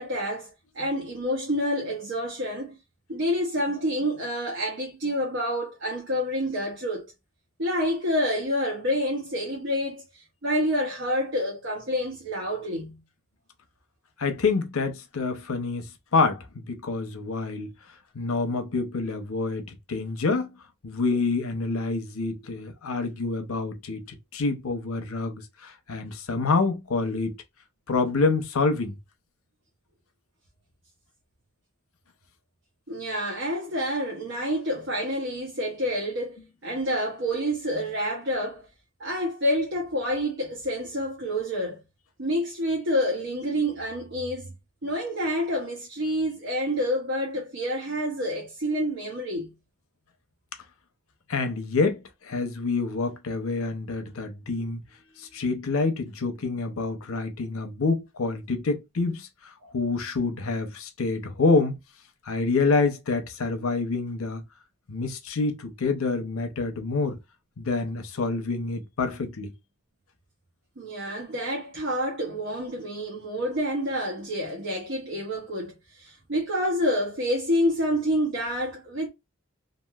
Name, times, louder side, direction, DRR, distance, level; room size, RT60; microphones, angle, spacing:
voice 1, 0.0-2.8 3.1-7.1 7.6-13.0 32.9-38.7 39.0-41.8 42.2-44.5 44.8-49.5 59.6-59.7 70.8-79.1, equal, 60° right, 0.8 m, -28 dB
voice 2, 14.2-17.7 18.1-20.5 20.8-27.4 27.9-29.0 51.3-54.8 55.2-61.8 62.3-64.4 64.9-67.2 67.6-69.5, left 3 dB, 85° left, 0.7 m, -27 dB
2.9 x 2.5 x 2.3 m
head